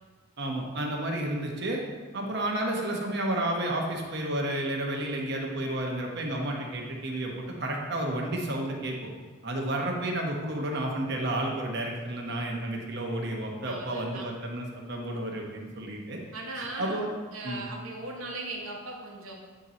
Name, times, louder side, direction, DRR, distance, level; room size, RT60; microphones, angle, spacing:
voice 1, 0.4-1.8 2.1-9.1 9.4-16.2 16.5-17.1 17.4-17.6, right 1 dB, 50° right, 0 dB, 1.0 m, -31 dB
voice 2, 13.6-14.3 16.3-17.0 17.3-19.3, right 2 dB, 80° right, 0 dB, 1.1 m, -38 dB
8.8 x 3.1 x 4.1 m, 1.4 s
head